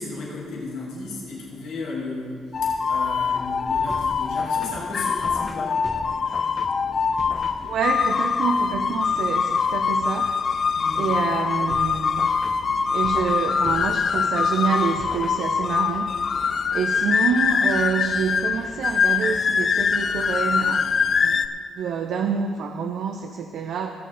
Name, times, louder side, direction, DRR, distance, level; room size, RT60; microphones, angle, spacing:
voice 1, 0.0-5.8 7.4-7.5 10.7-11.1, left 3 dB, 90° left, -5 dB, 3.7 m, -34 dB
sound 1, 2.5-21.5, left 6 dB, 45° left, 0.4 m, -23 dB
sound 2, 3.9-8.1 11.7-15.9, left 1 dB, 15° left, 0.8 m, -41 dB
voice 2, 7.6-10.4 10.9-12.3 12.9-20.9 21.2-21.4 21.8-23.9, right 6 dB, 75° right, 4 dB, 0.6 m, -27 dB
19.0 x 7.9 x 3.9 m, 2.1 s
cardioid pair, 90°, 0 cm